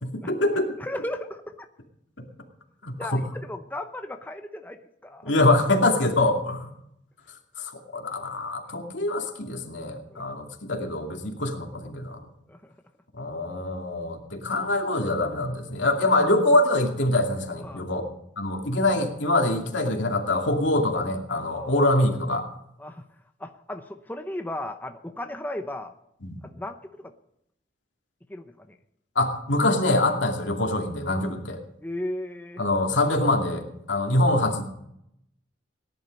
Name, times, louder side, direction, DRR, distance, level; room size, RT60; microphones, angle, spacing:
voice 1, 0.0-0.7 2.8-3.3 5.2-6.7 7.6-12.2 13.2-18.1 18.4-22.5 26.2-26.4 29.2-31.6 32.6-34.6, left 2 dB, 90° left, 2 dB, 2.5 m, -24 dB
voice 2, 0.8-1.7 3.0-5.3 10.1-10.2 12.5-12.7 17.6-17.9 21.4-22.0 22.8-23.1 23.4-25.9 26.4-27.1 28.3-28.8 31.8-32.6, left 1 dB, 10° left, 6 dB, 0.8 m, -36 dB
18.0 x 11.0 x 5.3 m, 0.77 s
head